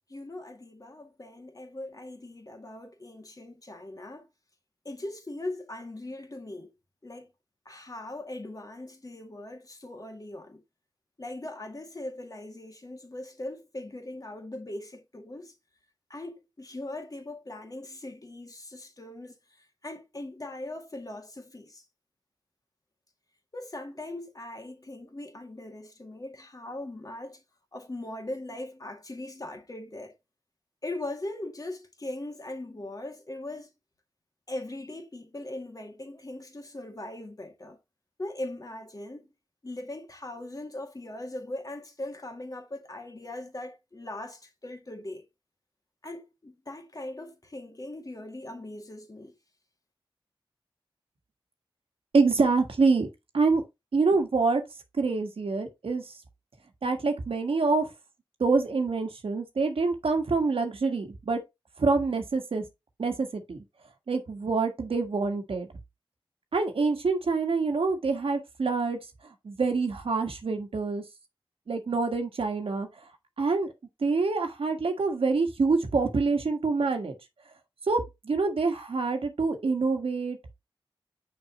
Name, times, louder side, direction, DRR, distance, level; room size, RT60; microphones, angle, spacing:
voice 1, 0.1-4.3 4.8-6.7 7.0-7.3 7.7-10.6 11.2-15.5 16.1-19.3 19.8-21.8 23.5-27.4 27.7-30.1 30.8-33.7 34.5-37.8 38.2-39.3 39.6-45.2 46.0-49.3, left 1 dB, 40° left, 2.1 m, -40 dB
voice 2, 52.1-53.1 53.3-53.6 53.9-54.6 55.0-56.1 56.8-57.9 58.4-61.4 61.8-62.6 63.0-63.6 64.1-65.7 66.5-69.0 69.4-71.0 71.7-72.9 73.4-73.7 74.0-77.1 77.9-80.4, right 4 dB, 80° right, 1.5 m, -26 dB
6.1 x 6.0 x 3.0 m
cardioid pair, 55°, 9 cm